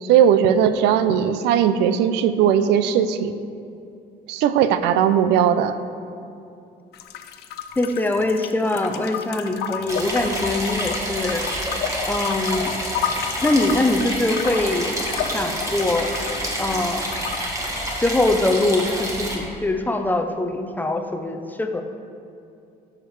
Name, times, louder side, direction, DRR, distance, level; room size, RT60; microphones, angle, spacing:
voice 1, 0.0-3.3 4.3-5.8, right 9 dB, 90° right, 11 dB, 0.4 m, -18 dB
sound 1, 6.9-17.5, left 8 dB, 70° left, 0.5 m, -32 dB
voice 2, 7.8-11.4 12.1-12.7 13.4-14.9 15.3-16.1 16.6-17.0 18.0-21.8, left 2 dB, 10° left, 5 dB, 0.5 m, -23 dB
sound 2, 9.9-19.4, equal, 20° right, 1.3 m, -28 dB
12.5 x 4.9 x 3.1 m, 2.6 s
cardioid pair, 110°, 17 cm